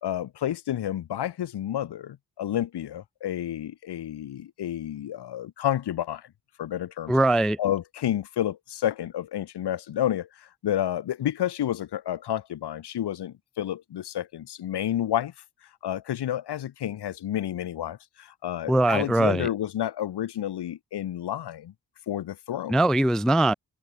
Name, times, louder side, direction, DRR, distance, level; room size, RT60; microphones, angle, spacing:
voice 1, 0.0-6.3 6.6-7.1 7.6-15.3 15.8-21.7 22.1-22.8, left 11 dB, 70° left, 1.0 m, -30 dB
voice 2, 7.1-7.6 18.7-19.5 22.7-23.5, right 1 dB, ahead, 0.3 m, -21 dB
cardioid pair, 60°, 42 cm